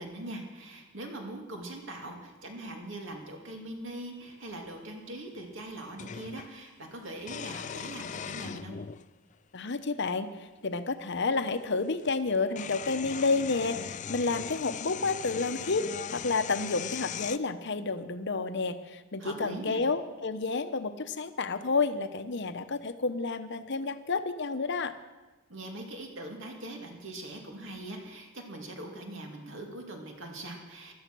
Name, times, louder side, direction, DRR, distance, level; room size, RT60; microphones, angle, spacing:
voice 1, 0.0-8.8 19.2-19.9 25.5-30.9, right 1 dB, 60° right, 2 dB, 2.6 m, -41 dB
sound 1, 4.3-4.4 6.0-6.5 7.2-9.1 10.0-10.1 11.6-11.7 12.0-17.4, left 8 dB, 35° left, 0.4 m, -39 dB
voice 2, 9.5-24.9, left 3 dB, 55° left, 10 dB, 0.9 m, -30 dB
16.0 x 12.5 x 6.2 m, 1.2 s
head